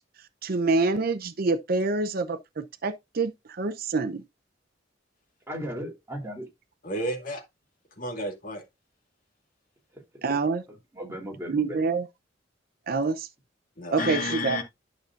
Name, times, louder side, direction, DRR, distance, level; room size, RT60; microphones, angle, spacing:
voice 1, 0.4-4.2 10.2-10.6 11.5-12.1 12.9-13.3 13.9-14.6, right 3 dB, 55° right, 0.6 m, -26 dB
voice 2, 5.5-6.5 9.9-10.2 10.9-11.8, equal, 15° right, 3.2 m, -36 dB
voice 3, 6.8-7.4 8.0-8.6 13.8-14.6, left 1 dB, 50° left, 2.0 m, -31 dB
11.5 x 6.5 x 2.5 m
head